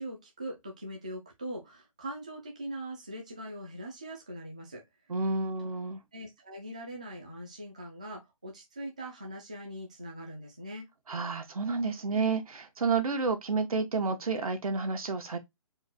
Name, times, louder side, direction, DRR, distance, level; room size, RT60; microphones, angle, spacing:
voice 1, 0.0-4.8 6.1-10.9, right 1 dB, 10° right, 0.4 m, -41 dB
voice 2, 5.1-6.0 11.1-15.4, right 4 dB, 80° right, 1.4 m, -30 dB
4.5 x 2.3 x 4.2 m
hypercardioid pair, 180°, 18 cm